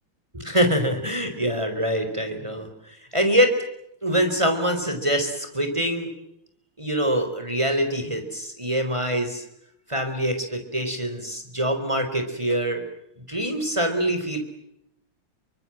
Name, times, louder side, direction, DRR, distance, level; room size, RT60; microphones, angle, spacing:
voice 1, 0.3-2.7 3.1-3.6 4.0-6.1 6.8-9.4 9.9-12.8 13.3-14.4, equal, 15° right, 6 dB, 4.6 m, -24 dB
28.5 x 25.0 x 7.7 m, 0.77 s
omnidirectional pair, 2.3 m